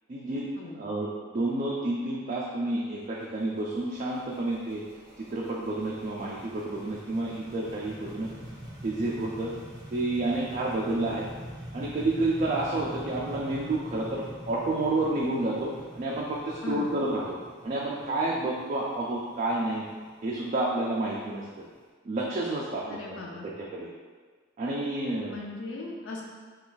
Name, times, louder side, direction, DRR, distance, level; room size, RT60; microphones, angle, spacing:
voice 1, 0.1-0.5 0.7-4.8 5.2-8.3 8.8-9.5 9.9-11.3 11.7-17.4 17.6-19.8 20.2-21.6 22.0-23.9 24.6-25.4, right 2 dB, 35° right, -4 dB, 0.3 m, -30 dB
sound 1, 3.0-21.8, equal, 15° right, 0.8 m, -45 dB
voice 2, 22.8-23.5 25.3-26.2, left 2 dB, 65° left, -2 dB, 0.4 m, -38 dB
2.5 x 2.3 x 3.8 m, 1.5 s
head